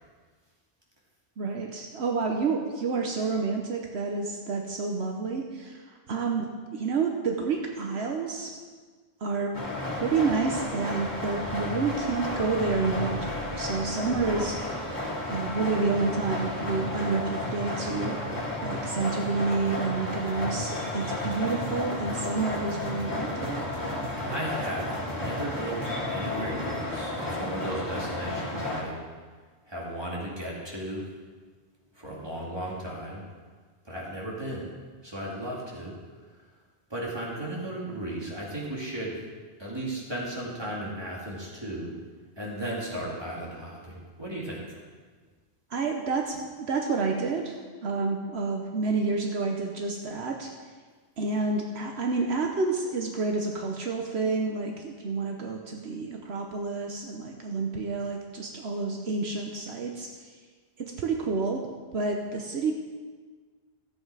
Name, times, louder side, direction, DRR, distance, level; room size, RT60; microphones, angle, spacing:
voice 1, 1.4-8.5 9.2-9.5 10.0-14.6 15.3-18.2 18.6-23.6 45.7-50.5 51.2-60.3 60.8-61.7 61.9-62.7, right 4 dB, 75° right, 2 dB, 1.2 m, -29 dB
sound 1, 9.5-28.8, left 2 dB, 45° left, 2.2 m, -33 dB
sound 2, 16.2-26.1, right 2 dB, 40° right, 1.4 m, -42 dB
voice 2, 23.8-29.0 29.7-31.1 31.9-33.2 33.8-34.7 35.0-36.0 36.3-36.4 36.9-39.2 39.6-41.9 42.4-44.8, right 1 dB, 25° right, -5 dB, 2.6 m, -35 dB
14.0 x 7.7 x 4.8 m, 1.5 s
omnidirectional pair, 1.1 m